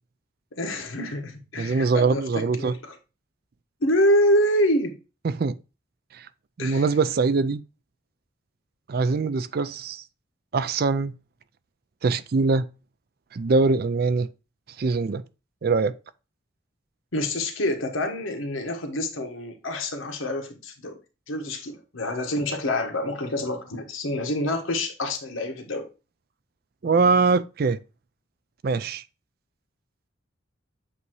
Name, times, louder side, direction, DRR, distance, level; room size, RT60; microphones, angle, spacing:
voice 1, 0.6-3.0 3.8-4.9 6.6-6.9 17.1-21.0 21.3-25.9, left 1 dB, 80° left, 1.3 m, -26 dB
voice 2, 1.6-2.7 5.2-5.5 6.6-7.6 8.9-10.0 10.5-11.1 12.0-12.6 13.3-14.3 14.8-15.2 15.6-15.9 26.8-27.8 28.6-29.0, right 4 dB, 50° right, 0.4 m, -22 dB
8.2 x 2.7 x 4.5 m
head